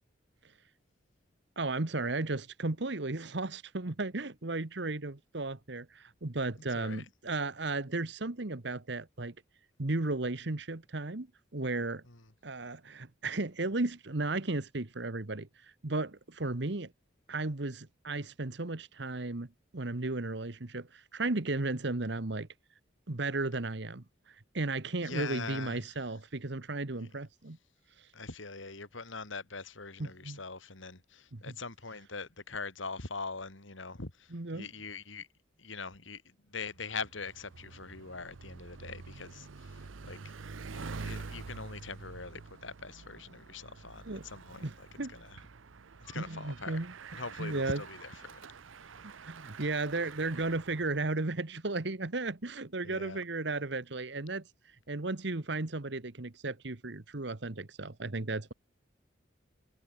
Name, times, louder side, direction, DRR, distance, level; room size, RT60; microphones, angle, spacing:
voice 1, 1.6-9.3 9.8-11.3 11.5-12.0 12.4-15.5 15.8-16.9 17.3-19.5 19.7-22.5 23.1-27.6 30.2-30.4 31.3-31.4 34.3-34.7 44.1-44.2 44.6-44.7 45.0-45.1 46.2-46.9 47.4-47.8 49.2-54.4 54.9-58.5, right 2 dB, 60° right, 1.3 m, -34 dB
voice 2, 6.7-7.1 12.0-12.3 25.0-25.9 27.0-27.1 28.1-35.3 35.6-40.3 40.7-45.4 46.0-46.8 47.1-48.4 52.8-53.2, left 4 dB, 80° left, 3.1 m, -43 dB
Bicycle, 36.6-51.3, right 4 dB, 85° right, 0.8 m, -47 dB
head